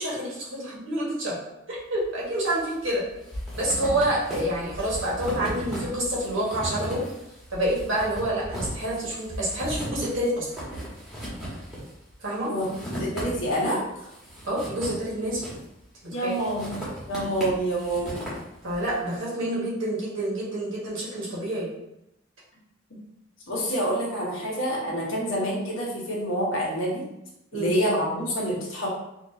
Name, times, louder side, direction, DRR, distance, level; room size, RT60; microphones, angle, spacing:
voice 1, 0.0-1.3 1.7-3.0 3.5-7.0 7.5-10.5 12.2-12.5 14.5-15.4 16.0-16.3 18.6-21.7 27.5-27.8, right 1 dB, 80° right, -6 dB, 1.5 m, -28 dB
sound 1, 2.0-2.6 2.9-13.6 14.0-15.8 16.3-19.0, equal, 5° right, 1.2 m, -36 dB
voice 2, 12.9-13.8 16.1-16.7 17.1-18.3 23.5-27.0 27.5-28.9, equal, 90° left, -4 dB, 1.2 m, -27 dB
4.3 x 2.6 x 2.7 m, 0.86 s
head